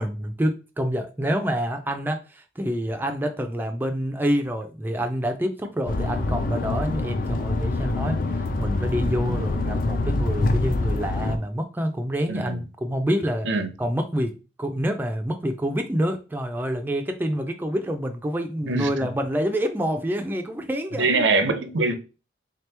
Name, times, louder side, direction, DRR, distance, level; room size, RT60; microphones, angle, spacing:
voice 1, 0.0-8.2 8.6-13.5 13.8-21.2, equal, 10° right, 0.3 m, -27 dB
sound 1, 5.9-11.4, left 2 dB, 50° left, 0.4 m, -25 dB
voice 2, 12.3-12.6 13.4-13.7 18.6-19.1 21.0-21.9, right 3 dB, 85° right, 0.6 m, -23 dB
3.7 x 2.9 x 3.3 m
head